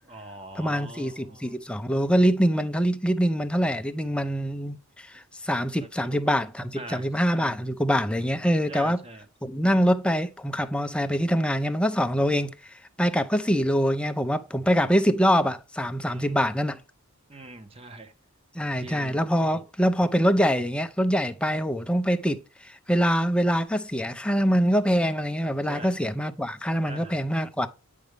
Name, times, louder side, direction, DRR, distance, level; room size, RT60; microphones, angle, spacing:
voice 1, 0.0-1.5 5.8-6.3 6.8-7.1 8.7-9.3 16.0-16.4 17.3-18.1 18.8-19.6 25.7-25.9 26.9-27.2, right 2 dB, 25° right, 1.1 m, -43 dB
voice 2, 0.6-9.0 9.4-12.5 13.0-16.8 18.5-27.7, equal, 5° left, 0.6 m, -24 dB
9.3 x 5.1 x 3.4 m
head